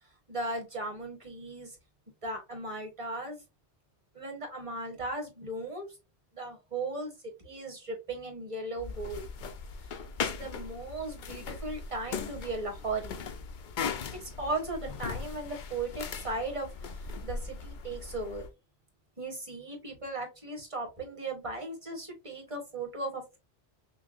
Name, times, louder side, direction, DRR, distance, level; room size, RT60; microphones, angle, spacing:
voice 1, 0.3-1.8 2.2-3.4 4.1-5.9 6.3-7.1 7.4-9.2 9.9-13.2 14.2-18.5 19.2-23.4, right 2 dB, 30° right, 1 dB, 1.5 m, -37 dB
sound 1, 8.8-18.5, left 5 dB, 55° left, 0.6 m, -39 dB
5.7 x 2.2 x 2.5 m, 0.25 s
omnidirectional pair, 1.1 m